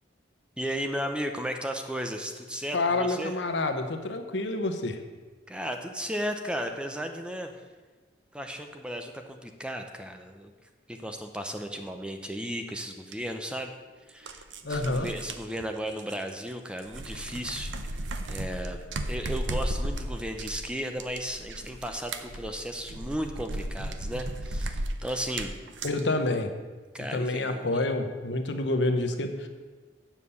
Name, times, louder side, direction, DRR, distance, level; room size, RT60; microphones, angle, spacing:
voice 1, 0.6-3.3 5.5-7.5 8.3-10.5 10.9-13.7 14.1-14.4 14.7-18.8 19.1-25.6 26.9-27.7, equal, 5° right, 5 dB, 0.7 m, -35 dB
voice 2, 2.7-5.0 14.6-15.1 25.8-26.5 27.1-29.5, left 2 dB, 75° left, 6 dB, 1.0 m, -28 dB
sound 1, 13.1-13.2 14.1-16.5 16.8-26.0, right 1 dB, 90° right, 0.8 m, -35 dB
8.3 x 7.4 x 7.0 m, 1.4 s
head